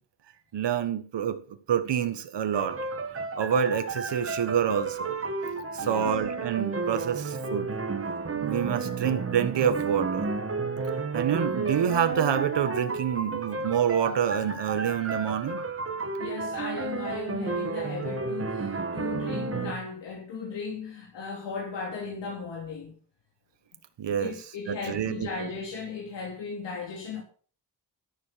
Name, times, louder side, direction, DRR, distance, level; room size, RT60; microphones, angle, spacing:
voice 1, 0.5-1.4 1.7-2.8 3.4-5.2 5.7-7.7 8.3-10.3 11.1-15.6 24.0-24.3 24.7-25.5, right 8 dB, 80° right, 1.4 m, -27 dB
sound 1, 2.5-19.7, right 4 dB, 30° right, 1.8 m, -32 dB
voice 2, 5.8-6.1 16.2-22.9 24.2-27.2, left 5 dB, 80° left, 3.3 m, -36 dB
13.5 x 6.8 x 5.7 m
cardioid pair, 95°, 42 cm